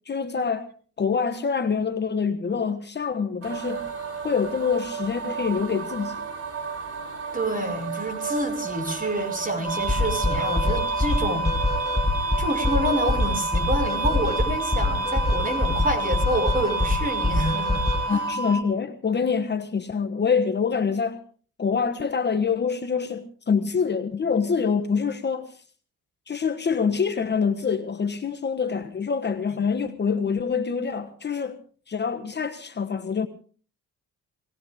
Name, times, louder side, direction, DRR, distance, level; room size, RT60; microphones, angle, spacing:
voice 1, 0.1-0.7 1.0-3.9 4.2-6.2 18.1-21.2 21.6-25.6 26.3-31.6 31.9-33.3, left 6 dB, 35° left, 1.3 m, -25 dB
sound 1, 3.4-18.4, right 6 dB, 55° right, 3.4 m, -34 dB
voice 2, 7.3-11.5 12.4-18.2, right 1 dB, 30° right, 5.5 m, -28 dB
sound 2, 9.6-18.6, left 1 dB, 10° left, 5.7 m, -24 dB
19.0 x 18.0 x 3.6 m
cardioid pair, 90°, 30 cm